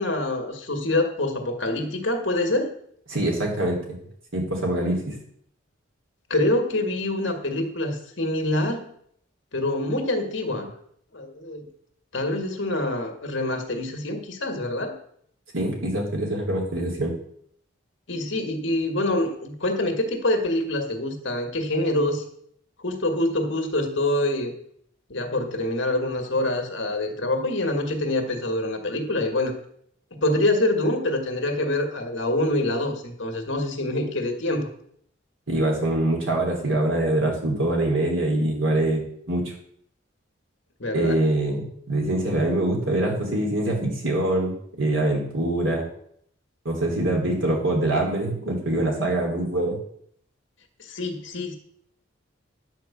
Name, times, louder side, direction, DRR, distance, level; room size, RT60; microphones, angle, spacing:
voice 1, 0.0-2.7 6.3-8.9 9.5-10.7 11.1-11.7 12.1-15.0 18.1-22.2 22.8-24.6 25.1-29.5 30.1-34.7 40.8-41.2 50.8-51.6, left 1 dB, 70° left, 4 dB, 1.8 m, -25 dB
voice 2, 3.1-3.8 4.3-5.1 15.5-17.1 35.5-39.5 40.9-45.8 46.6-49.8, right 1 dB, 90° right, -1 dB, 3.3 m, -24 dB
10.5 x 4.6 x 7.2 m, 0.67 s
head